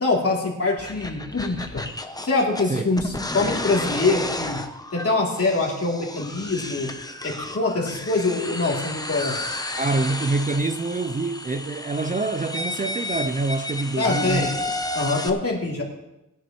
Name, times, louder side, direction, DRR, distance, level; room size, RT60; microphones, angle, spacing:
voice 1, 0.0-1.8 2.2-4.6 4.9-6.9 7.2-9.6 14.0-14.5 14.9-15.8, left 3 dB, 45° left, 3.1 m, -24 dB
sound 1, 0.8-15.3, left 2 dB, 10° left, 0.8 m, -32 dB
voice 2, 9.8-14.5, right 3 dB, 25° right, 0.4 m, -26 dB
19.0 x 10.5 x 3.1 m
wide cardioid pair, 120°, 32 cm